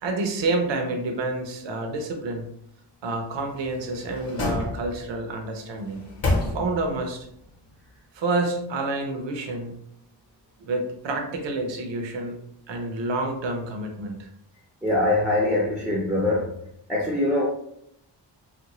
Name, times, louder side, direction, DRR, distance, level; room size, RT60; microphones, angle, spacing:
voice 1, 0.0-2.5 3.0-7.3 8.1-9.8 10.6-12.4 12.7-14.3, right 2 dB, 85° right, 3 dB, 0.7 m, -29 dB
sound 1, 3.5-5.2 5.7-7.0 7.4-7.5, left 2 dB, 35° left, 0.8 m, -29 dB
voice 2, 14.8-16.5 16.9-17.5, left 1 dB, ahead, -4 dB, 0.4 m, -23 dB
3.1 x 2.5 x 2.9 m, 0.74 s
wide cardioid pair, 170°, 43 cm